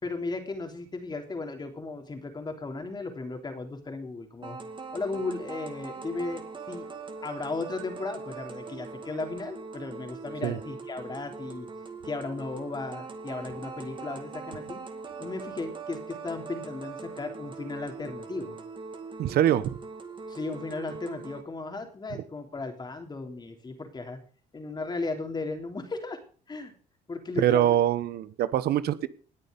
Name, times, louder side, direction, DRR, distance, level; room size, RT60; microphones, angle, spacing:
voice 1, 0.0-4.6 4.9-6.9 7.2-11.7 12.0-14.8 15.2-18.6 20.3-24.2 24.5-26.2 26.5-26.7 27.1-27.8, left 3 dB, 25° left, 5 dB, 3.4 m, -35 dB
sound 1, 4.4-21.4, right 4 dB, 30° right, 2.3 m, -41 dB
voice 2, 19.2-19.7 27.4-29.1, right 12 dB, 70° right, 16 dB, 1.0 m, -24 dB
19.5 x 6.9 x 5.2 m, 0.40 s
cardioid pair, 110°, 17 cm